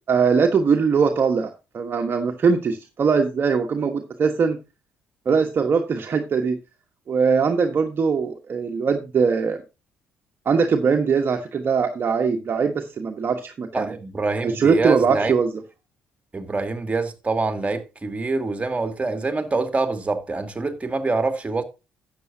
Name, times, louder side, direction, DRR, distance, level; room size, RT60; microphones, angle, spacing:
voice 1, 0.1-4.6 5.2-6.6 7.1-9.6 10.4-13.9 14.4-15.5, right 5 dB, 45° right, 1.3 m, -21 dB
voice 2, 13.7-15.3 16.3-21.6, right 3 dB, 25° right, 2.2 m, -25 dB
12.5 x 8.5 x 2.8 m
hypercardioid pair, 55°, 5 cm